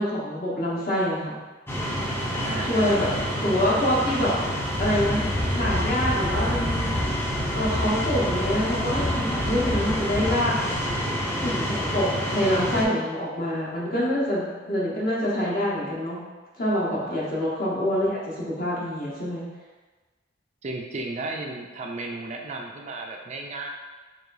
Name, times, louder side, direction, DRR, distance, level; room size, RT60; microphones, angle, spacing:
voice 1, 0.0-1.4 2.6-3.1 3.4-4.3 4.8-5.2 5.5-6.9 7.5-10.5 11.4-16.2 16.6-19.5, equal, 50° left, -6 dB, 1.1 m, -26 dB
sound 1, 1.7-12.8, equal, 10° left, 0.5 m, -27 dB
voice 2, 2.2-3.0 13.9-14.0 17.0-17.3 20.6-23.7, right 2 dB, 40° right, 1 dB, 0.4 m, -34 dB
4.7 x 3.1 x 2.6 m, 1.3 s
head